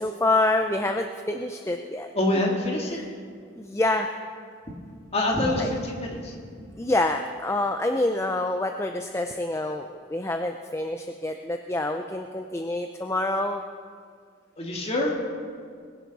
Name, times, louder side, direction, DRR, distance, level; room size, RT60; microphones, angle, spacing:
voice 1, 0.0-2.1 2.9-3.0 3.6-4.1 5.6-5.7 6.8-13.6, left 2 dB, 15° left, 5 dB, 0.4 m, -27 dB
voice 2, 2.1-3.0 5.1-6.4 14.6-15.1, left 1 dB, 30° left, 0 dB, 2.0 m, -25 dB
21.5 x 10.5 x 4.1 m, 2.1 s
head